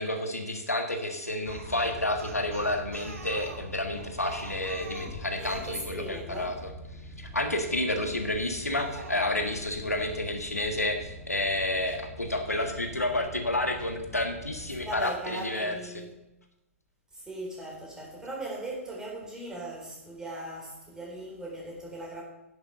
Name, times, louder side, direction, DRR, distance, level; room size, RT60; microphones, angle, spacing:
voice 1, 0.0-6.7 7.2-15.8, left 1 dB, 80° left, 5 dB, 1.6 m, -30 dB
sound 1, 1.5-15.0, equal, 10° left, 1.2 m, -45 dB
Speech, 1.5-5.8 7.8-8.2 8.7-9.6, right 3 dB, 60° right, 2.4 m, -45 dB
voice 2, 5.4-6.6 14.8-16.1 17.1-22.2, right 1 dB, 10° right, -2 dB, 3.5 m, -39 dB
10.5 x 7.3 x 6.4 m, 0.91 s
figure-of-eight pair, 115°, 8 cm